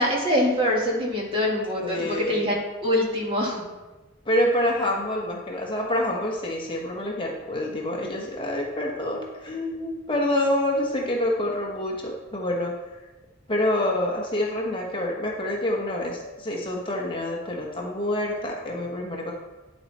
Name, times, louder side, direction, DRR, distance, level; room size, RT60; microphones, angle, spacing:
voice 1, 0.0-3.6, left 1 dB, 25° right, -2 dB, 2.1 m, -24 dB
voice 2, 1.8-2.4 4.2-12.8 13.5-19.3, left 1 dB, 25° left, -1 dB, 1.3 m, -27 dB
10.0 x 7.9 x 4.2 m, 1.2 s
head